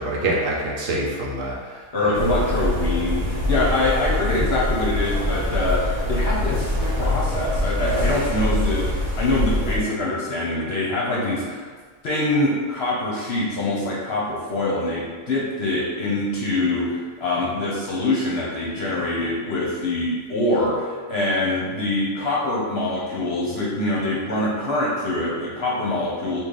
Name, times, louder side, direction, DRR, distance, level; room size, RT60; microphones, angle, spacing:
voice 1, 0.0-2.4, right 2 dB, 70° right, -3 dB, 1.0 m, -26 dB
voice 2, 1.9-6.7 7.0-8.9 9.2-11.7 12.0-26.4, left 2 dB, 55° left, -5 dB, 0.8 m, -24 dB
sound 1, 2.1-9.8, left 1 dB, 45° right, 0.6 m, -24 dB
3.2 x 2.4 x 3.8 m, 1.5 s
omnidirectional pair, 1.5 m